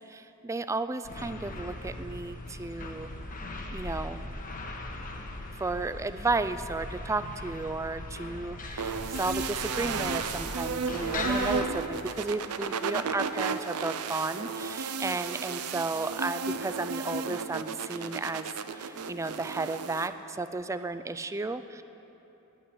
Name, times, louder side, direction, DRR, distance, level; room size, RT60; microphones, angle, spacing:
voice 1, 0.1-3.1 3.7-4.3 5.6-18.5 18.7-21.8, right 3 dB, 15° right, 11 dB, 0.3 m, -33 dB
sound 1, 1.0-11.7, left 2 dB, 40° left, 1.0 m, -39 dB
sound 2, 8.8-20.1, right 5 dB, 80° right, 0.6 m, -33 dB
10.0 x 8.8 x 10.0 m, 3.0 s
head